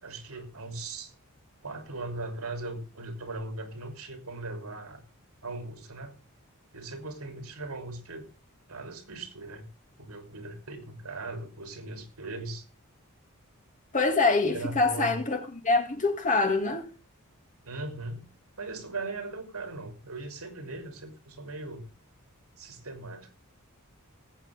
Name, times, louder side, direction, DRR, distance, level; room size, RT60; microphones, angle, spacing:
voice 1, 0.0-1.1 1.6-5.0 5.4-6.2 6.7-8.3 8.7-9.6 10.0-12.6 14.5-15.2 17.6-18.3 18.6-21.9 22.6-23.3, right 2 dB, 80° right, 3.0 m, -39 dB
voice 2, 13.9-16.9, left 3 dB, 35° left, 2.1 m, -25 dB
20.5 x 8.6 x 3.5 m
head